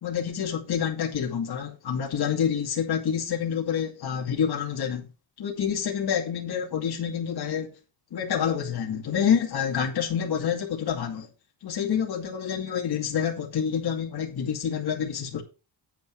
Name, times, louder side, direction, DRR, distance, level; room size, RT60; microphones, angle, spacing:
voice 1, 0.0-5.1 5.4-7.8 8.1-11.3 11.6-15.4, left 8 dB, 60° left, 2.5 m, -27 dB
9.3 x 9.1 x 4.6 m
wide cardioid pair, 140°, 44 cm